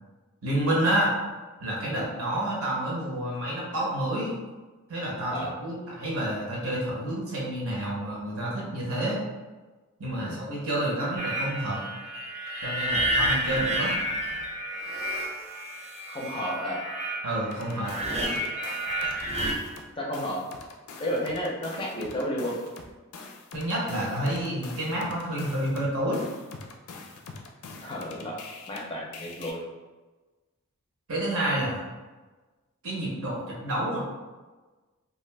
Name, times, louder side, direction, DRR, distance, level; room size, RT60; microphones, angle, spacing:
voice 1, 0.4-1.1 1.6-4.3 4.9-9.2 10.0-11.8 12.6-13.9 17.2-17.9 23.5-26.2 31.1-31.8 32.8-34.0, right 1 dB, 70° right, -4 dB, 0.9 m, -29 dB
sound 1, 11.2-19.5, right 1 dB, 30° right, 0.4 m, -30 dB
voice 2, 16.1-16.8 19.0-19.1 20.0-20.4 21.0-22.6 27.8-28.3 28.7-29.6, equal, 25° left, -3 dB, 0.5 m, -32 dB
sound 2, 17.5-19.9 20.1-28.8 29.1-29.5, left 4 dB, 85° left, 0.4 m, -44 dB
2.4 x 2.4 x 3.3 m, 1.2 s
head